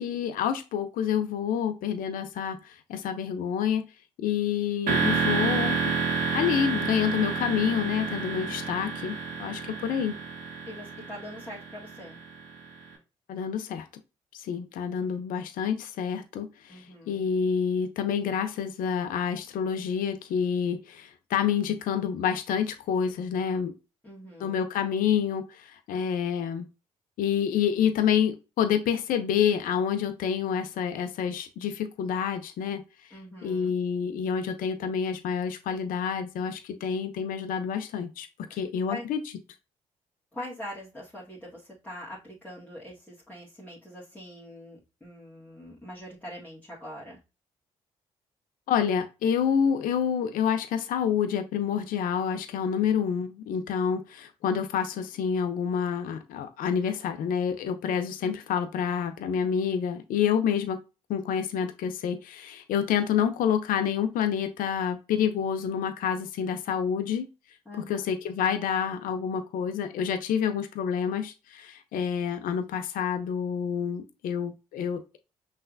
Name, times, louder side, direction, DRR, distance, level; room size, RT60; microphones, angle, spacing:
voice 1, 0.0-3.9 4.2-5.8 6.2-10.2 13.3-13.9 14.3-23.7 24.4-26.7 27.2-32.8 33.1-39.2 48.7-60.8 61.1-67.3 67.8-75.2, left 8 dB, 70° left, 9 dB, 0.6 m, -28 dB
sound 1, 4.9-12.7, right 5 dB, 75° right, 1.5 m, -29 dB
voice 2, 10.7-12.2 16.7-17.3 24.0-24.6 33.1-33.7 38.9-39.0 40.3-47.2 67.7-68.0, left 1 dB, 10° left, -7 dB, 1.9 m, -43 dB
5.6 x 3.3 x 2.6 m, 0.28 s
hypercardioid pair, 50°, 15 cm